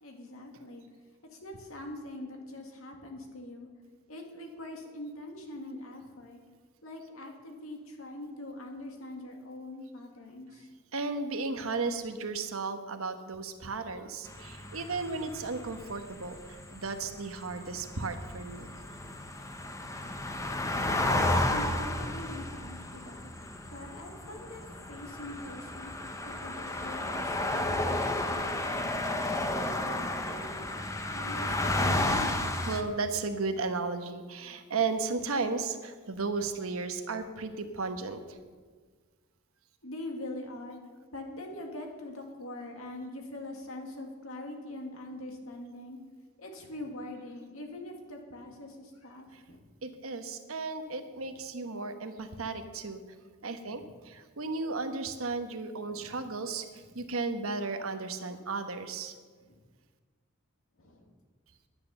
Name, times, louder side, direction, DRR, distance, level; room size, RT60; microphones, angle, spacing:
voice 1, 0.0-0.9 1.3-3.7 4.1-6.4 6.8-10.7 20.8-24.6 24.9-29.3 29.8-30.8 31.1-32.5 39.8-40.8 41.1-46.0 46.4-49.6 53.6-53.9 55.8-56.2 56.8-56.9 59.4-59.6 60.8-61.1, left 1 dB, 80° left, 2 dB, 2.1 m, -43 dB
voice 2, 10.9-18.7 32.7-38.4 49.8-53.0 53.4-59.1, right 4 dB, 85° right, 7 dB, 1.1 m, -34 dB
sound 1, 14.3-32.8, left 1 dB, 15° left, 0.9 m, -33 dB
10.5 x 9.4 x 7.0 m, 1.5 s
head